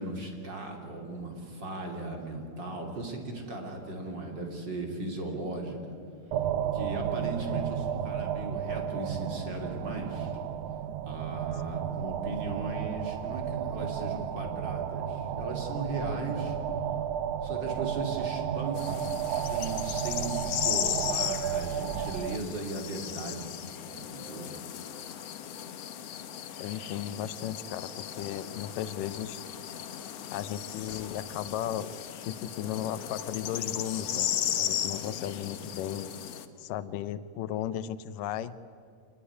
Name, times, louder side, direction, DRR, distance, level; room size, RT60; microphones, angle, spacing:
voice 1, 0.0-5.9 6.7-10.3 11.0-16.6 17.4-23.5 23.8-24.4 27.0-27.3, right 2 dB, 35° right, 2 dB, 3.4 m, -37 dB
sound 1, 6.3-22.4, right 9 dB, 75° right, 1.5 m, -33 dB
sound 2, 18.8-36.5, left 10 dB, 60° left, 1.9 m, -36 dB
sound 3, 25.2-31.0, left 1 dB, 25° left, 8.6 m, -61 dB
voice 2, 26.6-29.4 30.3-31.9 32.3-36.1 36.6-38.5, left 11 dB, 85° left, 15 dB, 2.4 m, -35 dB
26.0 x 20.0 x 9.9 m, 2.4 s
omnidirectional pair, 3.8 m